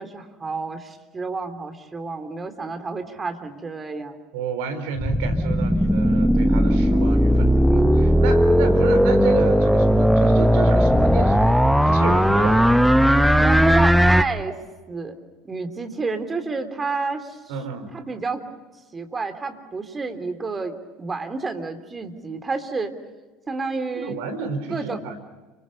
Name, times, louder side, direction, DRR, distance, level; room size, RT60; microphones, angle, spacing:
voice 1, 0.0-4.2 13.4-14.6 14.9-15.1 15.4-17.5 17.9-18.4 18.9-22.9 23.5-24.2 24.7-25.0, right 4 dB, 25° right, 7 dB, 3.4 m, -30 dB
voice 2, 4.3-12.7 17.5-18.0 23.9-25.2, right 5 dB, 65° right, 8 dB, 4.1 m, -31 dB
sound 1, 5.0-14.2, equal, ahead, 1.0 m, -17 dB
30.0 x 25.5 x 5.5 m, 1.2 s
hypercardioid pair, 70°, 0 cm